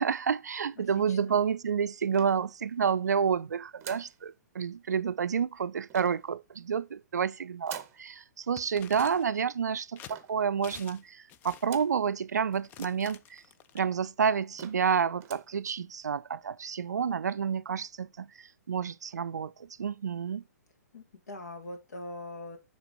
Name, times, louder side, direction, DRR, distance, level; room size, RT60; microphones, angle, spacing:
voice 1, 0.0-13.4 13.7-20.4, right 7 dB, 70° right, 0.4 m, -29 dB
voice 2, 0.8-1.3 20.9-22.6, left 2 dB, 65° left, 1.8 m, -42 dB
sound 1, 2.1-2.9 3.8-4.2 5.9-6.3 7.6-8.1 10.1-10.5 11.6-12.1 12.5-12.6 12.8-12.9 13.7-13.8 14.2-14.3 14.6-14.9 15.2-15.6, right 10 dB, 25° right, 0.8 m, -47 dB
sound 2, 8.6-9.4 10.0-10.2 10.6-11.0 11.3-11.8 12.5-13.8, left 10 dB, 20° left, 0.4 m, -48 dB
8.3 x 3.4 x 5.2 m
figure-of-eight pair, 120°, 9 cm